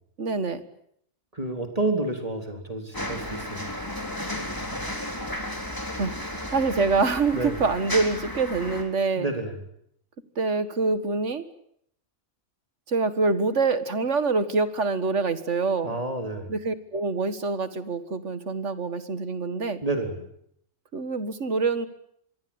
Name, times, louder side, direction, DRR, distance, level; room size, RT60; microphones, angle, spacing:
voice 1, 0.2-0.6 6.0-9.3 10.4-11.4 12.9-16.0 16.5-19.8 20.9-21.9, right 4 dB, 70° right, 12 dB, 2.0 m, -25 dB
voice 2, 1.3-3.7 7.3-7.6 9.2-9.6 15.8-16.5 19.8-20.3, right 2 dB, 30° right, 4 dB, 3.8 m, -29 dB
sound 1, 2.9-8.8, left 1 dB, 15° left, 3.9 m, -33 dB
26.5 x 22.0 x 8.8 m, 0.71 s
omnidirectional pair, 1.3 m